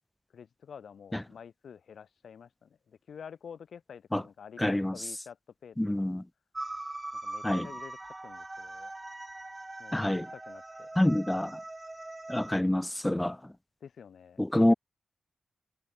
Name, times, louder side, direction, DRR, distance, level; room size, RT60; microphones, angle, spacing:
voice 1, 0.3-5.4 5.6-6.2 7.2-8.9 9.8-10.9 13.8-14.8, left 7 dB, 70° left, 1.7 m, -49 dB
voice 2, 4.6-4.9 5.8-6.2 7.4-7.7 9.9-10.2 11.0-11.5 12.3-13.4 14.4-14.7, left 1 dB, 10° left, 0.4 m, -26 dB
sound 1, 6.5-12.6, right 2 dB, 20° right, 1.2 m, -41 dB
cardioid pair, 90°, 0 cm